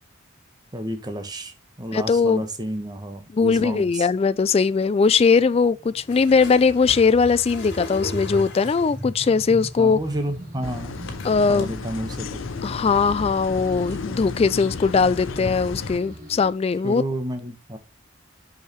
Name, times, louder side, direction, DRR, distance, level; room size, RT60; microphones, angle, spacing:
voice 1, 0.7-4.1 9.8-11.0 11.5-12.3 15.4-15.6 16.8-17.8, right 1 dB, 20° right, 1.1 m, -31 dB
voice 2, 1.9-2.4 3.3-10.0 11.2-11.7 12.6-17.0, left 5 dB, 30° left, 0.3 m, -20 dB
sound 1, 5.3-16.5, equal, 40° right, 3.2 m, -39 dB
sound 2, 6.1-9.1 10.1-10.2 11.1-11.6 12.2-12.3 12.7-13.1 13.8-13.9, left 2 dB, 60° left, 2.8 m, -37 dB
sound 3, 10.6-16.0, left 4 dB, 85° left, 0.6 m, -33 dB
6.5 x 5.6 x 3.0 m
head